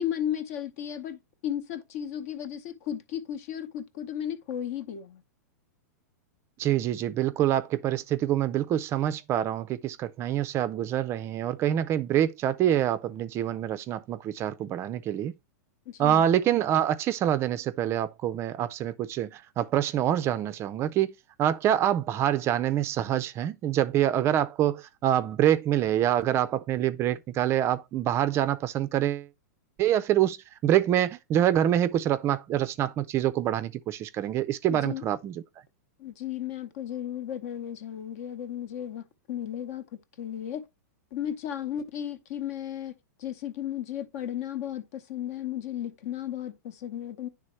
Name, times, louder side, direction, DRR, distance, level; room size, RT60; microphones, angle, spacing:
voice 1, 0.0-5.2 15.9-16.2 34.7-35.0 36.0-39.9 40.2-40.7 41.1-42.9 43.2-47.3, left 10 dB, 55° left, 0.9 m, -34 dB
voice 2, 6.6-15.3 16.0-21.1 21.4-29.3 29.8-30.4 30.6-35.3, right 11 dB, 30° right, 0.4 m, -26 dB
9.6 x 3.4 x 3.0 m
hypercardioid pair, 125°, 9 cm